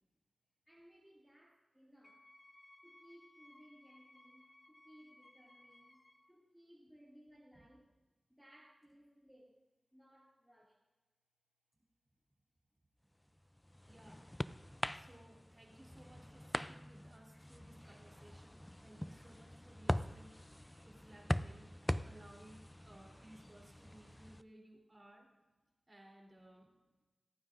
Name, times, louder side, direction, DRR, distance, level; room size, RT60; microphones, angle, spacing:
voice 1, 0.7-2.3 2.8-6.0 6.3-9.6 9.9-10.8, equal, 5° right, -6 dB, 2.2 m, -63 dB
Wind instrument woodwind instrument, 2.0-6.3, left 1 dB, 35° left, 1.2 m, -63 dB
sound 1, 13.3-24.4, left 1 dB, 10° left, 0.3 m, -43 dB
voice 2, 13.9-14.3 14.9-20.4 20.9-25.3 25.9-26.7, right 1 dB, 30° right, -1 dB, 3.2 m, -60 dB
27.5 x 9.4 x 2.5 m, 1.1 s
wide cardioid pair, 70°, 0 cm